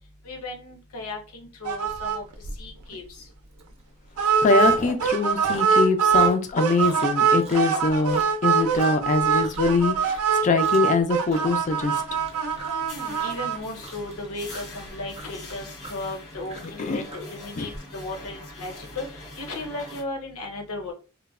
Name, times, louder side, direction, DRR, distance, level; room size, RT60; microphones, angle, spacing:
voice 1, 0.2-2.2 2.6-3.0 12.7-19.0 19.4-20.9, left 2 dB, 70° left, 3 dB, 0.7 m, -35 dB
sound 1, 1.6-2.2 2.4-2.6 2.9-3.0 4.2-6.3 6.6-13.6, right 6 dB, 70° right, 0.5 m, -23 dB
Chewing mastication, 3.6-3.8 4.1-5.1 5.3-9.7 10.0-10.4 10.6-11.0 11.3-17.8, right 2 dB, 30° right, 0.7 m, -41 dB
voice 2, 4.4-12.0 16.8-17.0 17.6-17.7, left 3 dB, 35° left, 8 dB, 0.3 m, -23 dB
sound 2, 11.4-20.0, left 1 dB, 90° left, 1.3 m, -43 dB
2.9 x 2.1 x 2.3 m, 0.34 s
head